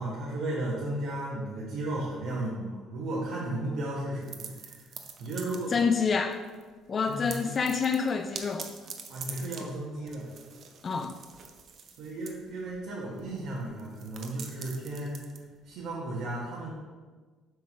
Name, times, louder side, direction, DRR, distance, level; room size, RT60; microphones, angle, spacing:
voice 1, 0.0-4.9 5.2-5.8 7.0-7.5 9.1-10.3 12.0-15.3 15.6-16.7, right 1 dB, 60° right, -5 dB, 1.4 m, -34 dB
sound 1, 4.2-6.0 6.3-6.7 7.0-16.0, right 6 dB, 40° right, 0.7 m, -45 dB
voice 2, 5.7-6.4 6.9-8.7 10.8-11.1, left 5 dB, 25° left, 6 dB, 0.3 m, -27 dB
7.8 x 3.6 x 6.1 m, 1.4 s
cardioid pair, 155°, 0 cm